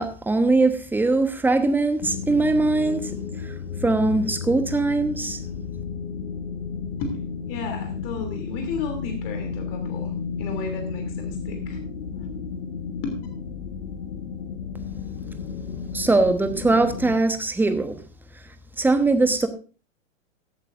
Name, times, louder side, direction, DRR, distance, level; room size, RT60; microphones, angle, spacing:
voice 1, 0.0-3.1 3.4-3.5 3.8-5.4 15.9-17.9 18.8-19.5, right 3 dB, 5° right, 1.1 m, -21 dB
sound 1, 2.0-17.2, left 6 dB, 70° left, 1.4 m, -33 dB
voice 2, 7.5-10.1 10.4-11.8 12.1-12.3 13.0-13.2, left 4 dB, 45° left, 3.0 m, -33 dB
16.0 x 11.5 x 2.6 m
figure-of-eight pair, 100°, 39 cm